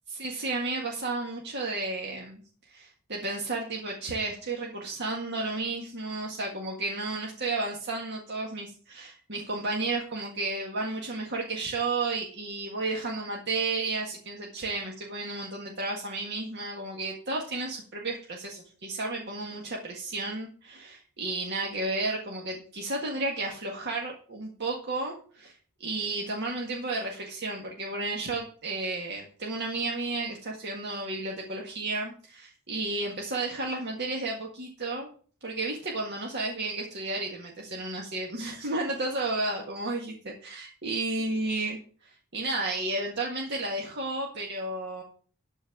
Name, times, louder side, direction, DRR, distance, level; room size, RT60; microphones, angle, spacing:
voice 1, 0.1-2.4 2.7-25.5 25.8-35.1 35.4-41.8 42.0-45.0, right 2 dB, 55° right, -1 dB, 1.8 m, -32 dB
12.5 x 4.6 x 7.1 m, 0.44 s
head